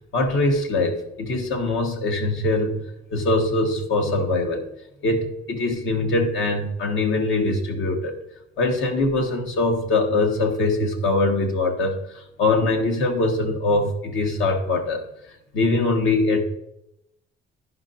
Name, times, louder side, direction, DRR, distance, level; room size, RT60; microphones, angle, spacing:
voice 1, 0.1-2.8 3.1-4.6 5.0-8.2 8.6-15.0 15.5-16.4, left 2 dB, 75° left, 3 dB, 1.4 m, -22 dB
11.5 x 5.7 x 2.6 m, 0.81 s
cardioid pair, 90°, 20 cm